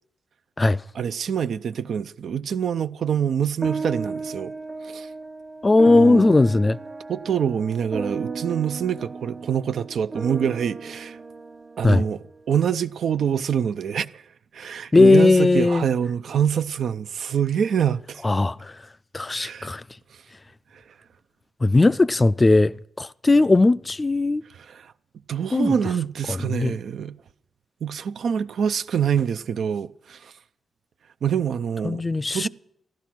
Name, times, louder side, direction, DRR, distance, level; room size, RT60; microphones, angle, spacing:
voice 1, 0.9-4.5 4.8-5.1 5.9-6.3 7.1-11.2 11.8-14.2 14.5-18.2 19.3-19.7 20.7-20.8 24.5-24.9 25.3-27.2 27.8-30.3 31.2-32.0 32.3-32.5, right 8 dB, 70° right, 0.5 m, -25 dB
sound 1, 3.6-12.3, right 4 dB, 35° right, 1.3 m, -34 dB
voice 2, 5.6-6.8 11.8-12.0 14.9-15.9 18.2-18.7 19.1-19.8 21.6-24.4 25.5-25.7 26.3-26.8 31.8-32.5, left 2 dB, 30° left, 0.4 m, -18 dB
14.0 x 12.0 x 6.0 m
hypercardioid pair, 40°, 0 cm